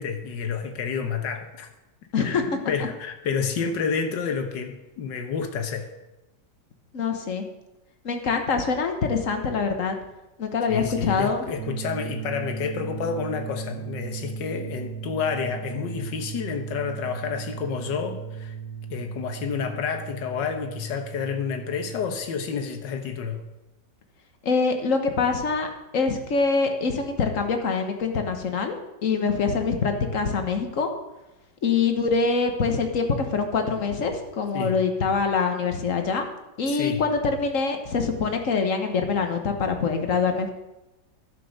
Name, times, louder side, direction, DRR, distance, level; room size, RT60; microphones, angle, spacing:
voice 1, 0.0-1.7 2.2-5.9 10.7-18.6 18.9-23.4 34.5-34.8 36.6-37.0, left 6 dB, 80° left, 6 dB, 1.8 m, -29 dB
voice 2, 6.9-7.4 8.0-10.0 10.4-11.5 24.4-28.7 29.0-30.9 31.6-36.3 36.6-40.5, left 4 dB, 50° left, 5 dB, 1.5 m, -24 dB
sound 1, 11.6-22.2, right 7 dB, 60° right, 1.2 m, -36 dB
11.0 x 7.2 x 6.5 m, 0.98 s
omnidirectional pair, 1.9 m